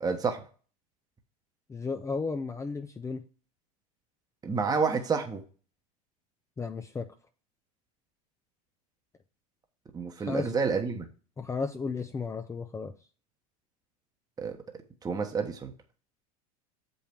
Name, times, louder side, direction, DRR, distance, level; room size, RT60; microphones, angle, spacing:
voice 1, 0.0-0.4 4.4-5.4 9.9-11.1 14.4-14.6 15.0-15.7, right 5 dB, 20° right, 5 dB, 1.2 m, -29 dB
voice 2, 1.7-3.3 6.6-7.1 10.3-10.6 11.4-12.9, left 4 dB, 15° left, 6 dB, 0.6 m, -34 dB
7.1 x 5.4 x 4.5 m, 0.38 s
hypercardioid pair, 105°, 19 cm